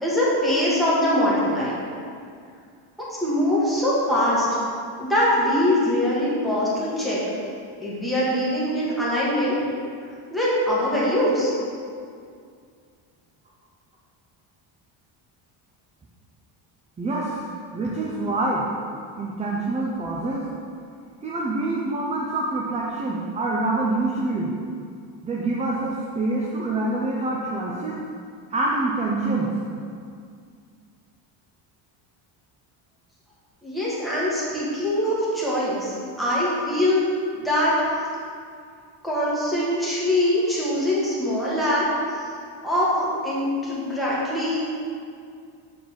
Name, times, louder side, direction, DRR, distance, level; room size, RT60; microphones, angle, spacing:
voice 1, 0.0-1.7 3.1-4.5 5.0-7.2 7.8-9.5 10.3-11.5 33.6-37.1 37.3-37.7 39.0-41.9 42.2-42.3 42.6-44.6, left 1 dB, ahead, -8 dB, 1.7 m, -23 dB
voice 2, 17.0-17.4 17.7-18.7 19.2-20.5 21.2-24.5 25.2-28.0 28.5-29.5, right 2 dB, 15° right, -3 dB, 0.3 m, -26 dB
7.1 x 4.0 x 6.2 m, 2.3 s
cardioid pair, 170°, 49 cm